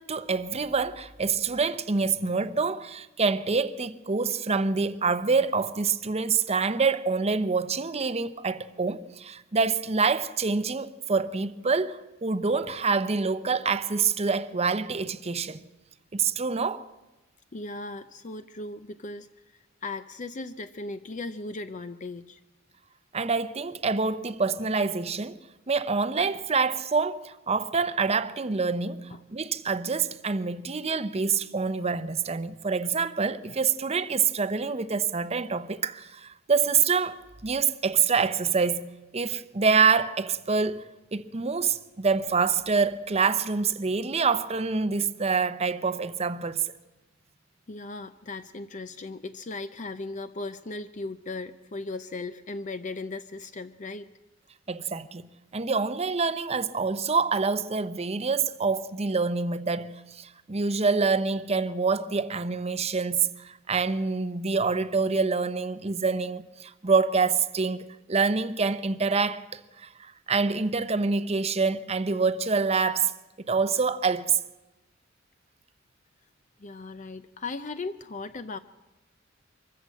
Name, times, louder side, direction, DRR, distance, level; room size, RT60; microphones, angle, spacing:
voice 1, 0.0-15.6 16.1-16.8 23.1-25.4 25.7-40.9 41.1-46.7 54.7-73.1 73.5-74.4, right 5 dB, 30° right, 0.7 m, -26 dB
voice 2, 17.5-22.4 29.1-29.2 33.5-33.6 47.7-54.1 76.6-78.6, left 3 dB, 40° left, 0.6 m, -37 dB
24.0 x 14.5 x 7.7 m
head